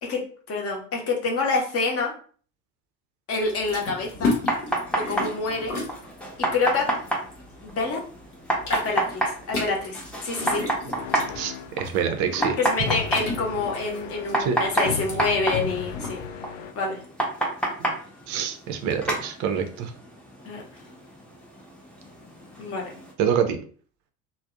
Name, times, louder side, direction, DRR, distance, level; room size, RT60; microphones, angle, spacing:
voice 1, 0.0-2.1 3.3-4.3 4.9-5.8 6.4-6.9 7.6-8.0 8.7-9.2 9.5-10.7 12.6-16.2 16.7-17.0 20.4-20.6 22.6-23.0, left 3 dB, 30° left, 0 dB, 0.8 m, -27 dB
sound 1, 3.3-7.9 8.2-16.2, left 2 dB, 80° left, 0.9 m, -33 dB
sound 2, 4.1-23.1, right 1 dB, ahead, 0.6 m, -31 dB
sound 3, 11.0-11.8 12.9-14.4 14.9-16.7, left 6 dB, 60° left, 0.5 m, -35 dB
voice 2, 11.4-12.6 14.4-14.6 17.9-18.0 18.3-19.9 23.2-23.6, right 7 dB, 40° right, 6 dB, 0.5 m, -26 dB
2.5 x 2.0 x 2.4 m, 0.44 s
figure-of-eight pair, 70°, 44 cm